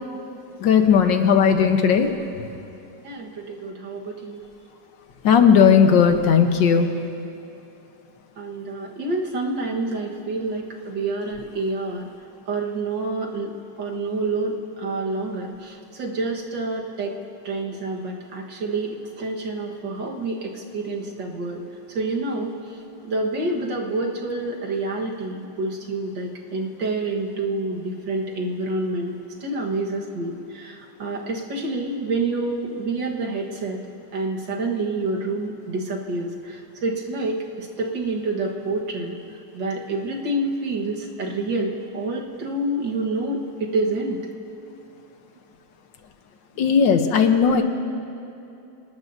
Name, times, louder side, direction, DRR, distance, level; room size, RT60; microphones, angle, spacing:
voice 1, 0.6-2.1 5.2-7.0 46.6-47.6, left 7 dB, 80° left, 6 dB, 1.7 m, -16 dB
voice 2, 3.0-4.4 8.4-12.1 12.5-17.2 17.4-21.6 21.9-22.6 23.0-33.8 34.1-39.2 39.5-44.2, right 2 dB, 75° right, 0 dB, 2.2 m, -28 dB
26.5 x 19.5 x 2.7 m, 2.7 s
omnidirectional pair, 2.0 m